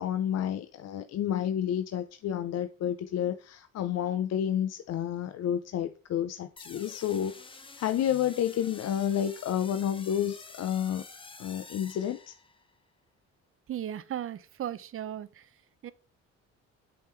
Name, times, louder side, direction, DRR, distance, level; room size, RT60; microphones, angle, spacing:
voice 1, 0.0-11.0 11.4-12.3, left 10 dB, 60° left, 0.5 m, -30 dB
sound 1, 6.6-12.7, left 3 dB, 15° left, 0.8 m, -49 dB
voice 2, 13.7-15.5 15.8-15.9, right 10 dB, 45° right, 0.5 m, -36 dB
7.7 x 3.6 x 4.4 m
cardioid pair, 90°, 30 cm